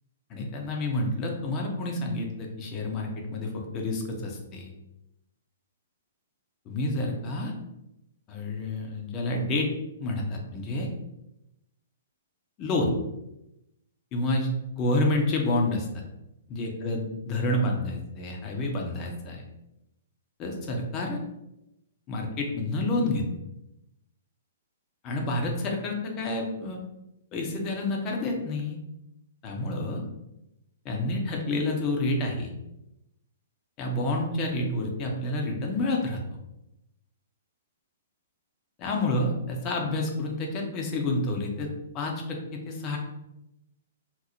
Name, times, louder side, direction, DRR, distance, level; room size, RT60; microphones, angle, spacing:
voice 1, 0.3-4.7 6.7-7.5 8.3-9.7 10.0-10.9 12.6-12.9 14.1-15.9 16.5-19.4 20.4-21.2 22.1-23.2 25.0-26.8 27.3-28.8 29.4-30.0 30.8-32.5 33.8-36.2 38.8-41.7 41.9-43.0, left 2 dB, 30° left, 1 dB, 0.7 m, -29 dB
2.9 x 2.0 x 4.0 m, 0.88 s
figure-of-eight pair, 115°, 0 cm